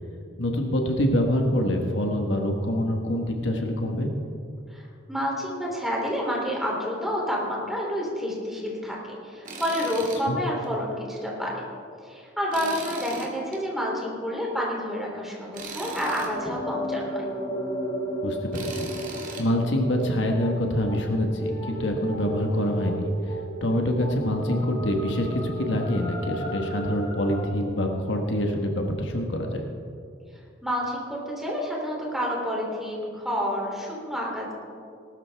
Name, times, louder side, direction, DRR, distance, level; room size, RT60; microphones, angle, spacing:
voice 1, 0.4-4.1 10.3-10.4 18.2-18.9 19.4-29.7, left 1 dB, 70° left, 3 dB, 1.4 m, -26 dB
voice 2, 4.7-11.6 12.0-17.3 30.6-34.5, equal, ahead, -3 dB, 3.1 m, -29 dB
Tools, 9.5-10.2 10.6-10.7 12.5-13.6 15.5-16.3 18.5-19.4, right 3 dB, 45° right, 2.0 m, -38 dB
sound 1, 15.6-27.4, right 1 dB, 25° left, 3.6 m, -34 dB
19.0 x 12.5 x 3.5 m, 2.4 s
head